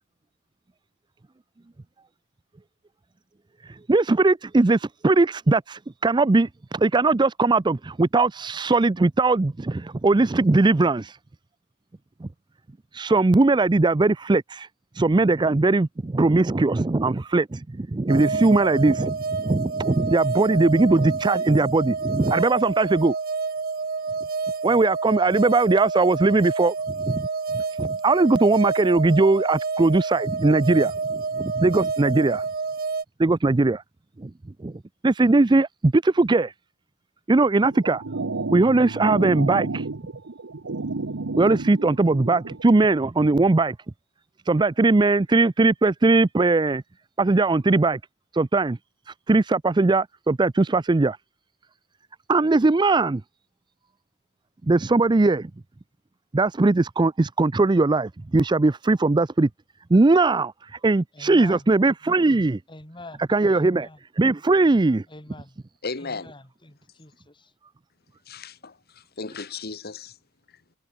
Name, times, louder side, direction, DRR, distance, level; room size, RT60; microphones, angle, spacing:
voice 1, 3.9-11.0 13.0-14.7 15.0-23.1 24.6-26.7 27.1-27.2 27.8-30.9 31.4-32.4 33.2-33.8 34.6-34.7 35.0-36.5 37.3-38.0 38.5-39.7 41.4-43.7 44.5-46.8 47.2-48.0 48.4-48.8 49.3-51.2 52.3-53.2 54.7-55.4 56.3-59.5 59.9-60.5 60.8-62.6 63.3-63.8 64.2-65.0, right 3 dB, 25° right, 0.5 m, -20 dB
sound 1, 18.1-33.0, right 4 dB, 50° right, 1.1 m, -29 dB
sound 2, 37.6-42.6, right 3 dB, 75° right, 0.9 m, -31 dB
voice 2, 61.1-61.7 62.7-64.0 65.1-65.6 66.0-67.5, left 2 dB, 25° left, 5.0 m, -45 dB
voice 3, 65.8-66.3 68.3-70.2, left 4 dB, 55° left, 1.8 m, -35 dB
head